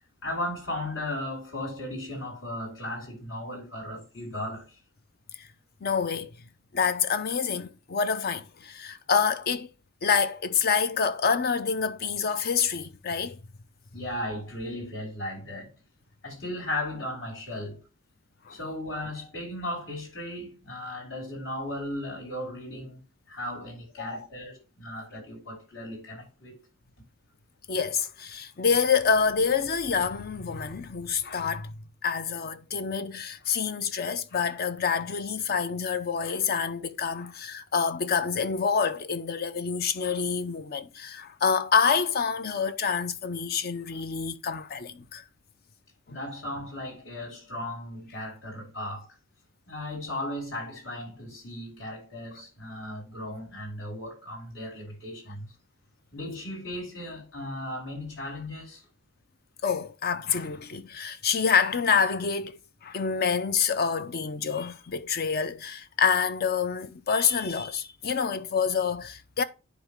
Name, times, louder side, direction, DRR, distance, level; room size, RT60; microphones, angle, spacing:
voice 1, 0.2-4.8 13.9-15.7 16.2-17.8 18.5-23.0 23.3-26.6 46.1-49.1 49.7-55.5 56.1-58.8, left 1 dB, 65° left, 5.1 m, -36 dB
voice 2, 5.8-6.3 6.7-9.7 10.0-13.4 18.5-18.6 24.0-24.3 27.7-31.7 32.0-45.2 46.1-46.2 59.6-69.4, left 6 dB, 50° left, 0.6 m, -27 dB
10.5 x 4.1 x 3.6 m
head